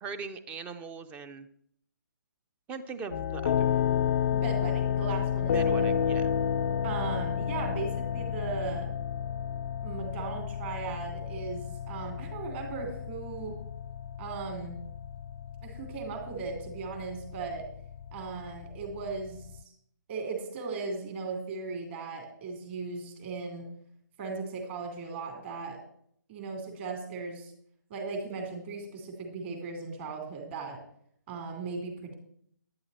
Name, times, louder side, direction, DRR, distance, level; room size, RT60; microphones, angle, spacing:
voice 1, 0.0-1.5 2.7-3.9 5.5-6.2, right 5 dB, 15° right, 12 dB, 0.5 m, -40 dB
sound 1, 3.1-19.6, left 8 dB, 45° left, 0.4 m, -31 dB
voice 2, 4.3-5.9 6.8-8.9 9.8-13.6 14.2-14.8 15.6-17.7 18.1-19.6 20.1-23.7 24.2-25.8 26.3-27.5 27.9-30.8 31.3-32.1, right 4 dB, 35° right, 3 dB, 3.0 m, -37 dB
10.5 x 10.0 x 4.2 m, 0.67 s
hypercardioid pair, 150°, 10 cm